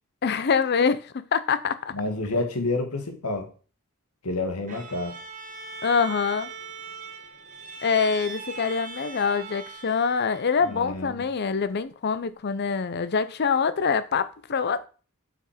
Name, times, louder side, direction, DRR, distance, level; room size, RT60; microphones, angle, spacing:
voice 1, 0.2-1.9 5.8-6.5 7.8-14.9, left 5 dB, 45° left, 0.5 m, -25 dB
voice 2, 1.9-3.5 4.2-5.1 10.6-11.2, left 2 dB, 85° left, 1.4 m, -29 dB
Bowed string instrument, 4.7-11.0, right 5 dB, 35° right, 1.0 m, -40 dB
5.9 x 5.6 x 4.9 m
head